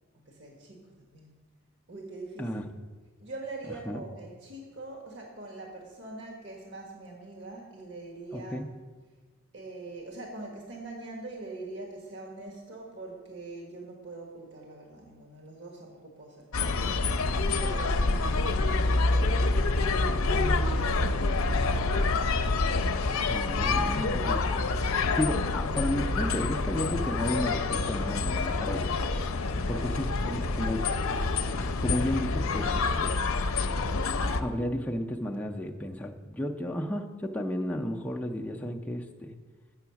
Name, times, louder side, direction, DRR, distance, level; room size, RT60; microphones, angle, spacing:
voice 1, 0.3-1.3 1.9-2.5 3.2-8.6 9.5-21.7 29.5-30.5, right 2 dB, 60° right, 0 dB, 1.4 m, -44 dB
voice 2, 8.3-8.7 23.3-24.4 25.1-28.8 29.7-30.9 31.6-33.2 34.4-39.4, left 1 dB, 5° left, 0 dB, 0.4 m, -33 dB
sound 1, 16.5-34.4, left 3 dB, 70° left, 0.6 m, -27 dB
7.1 x 7.0 x 5.8 m, 1.4 s
head